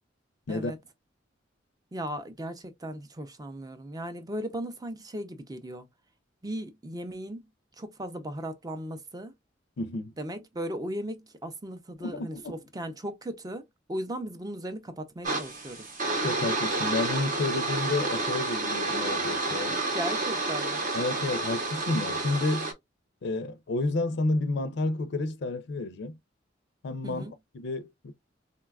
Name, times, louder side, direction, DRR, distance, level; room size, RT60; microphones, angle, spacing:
voice 1, 1.9-5.9 6.4-7.5 7.8-9.3 10.2-15.9 19.9-20.8 27.0-27.3, right 1 dB, 20° right, 0.5 m, -37 dB
voice 2, 9.8-10.1 12.0-12.6 16.2-19.8 20.9-22.7 23.2-26.2 26.8-28.1, left 2 dB, 65° left, 0.4 m, -30 dB
sound 1, 15.2-22.7, right 2 dB, 45° right, 0.8 m, -30 dB
3.8 x 2.2 x 2.3 m
head